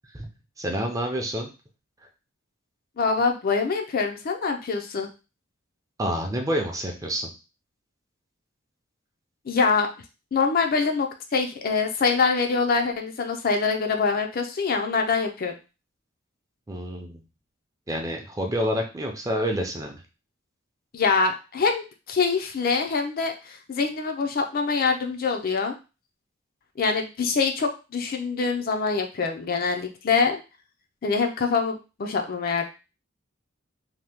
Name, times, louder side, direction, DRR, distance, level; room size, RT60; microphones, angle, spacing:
voice 1, 0.6-1.5 6.0-7.3 16.7-17.2 17.9-20.0, equal, 15° right, 2 dB, 0.5 m, -28 dB
voice 2, 3.0-5.1 9.5-9.9 10.3-15.5 20.9-25.7 26.8-30.4 31.0-32.6, left 4 dB, 45° left, 4 dB, 0.4 m, -24 dB
2.8 x 2.2 x 3.4 m, 0.30 s
head